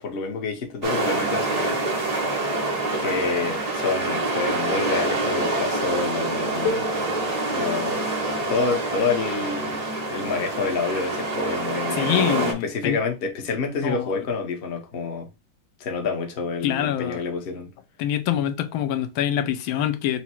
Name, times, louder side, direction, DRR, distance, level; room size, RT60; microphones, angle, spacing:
voice 1, 0.0-1.8 3.0-6.9 7.5-8.1 8.5-9.8 10.1-15.3 15.8-17.7, left 4 dB, 50° left, 0.7 m, -28 dB
sound 1, 0.8-12.5, right 2 dB, 85° right, 0.3 m, -26 dB
sound 2, 6.7-12.1 13.1-13.2 14.1-14.3, left 4 dB, 70° left, 1.3 m, -36 dB
voice 2, 12.0-13.0 13.8-14.0 16.6-17.2 18.0-20.2, left 11 dB, 85° left, 1.4 m, -25 dB
4.6 x 2.0 x 4.3 m
omnidirectional pair, 2.1 m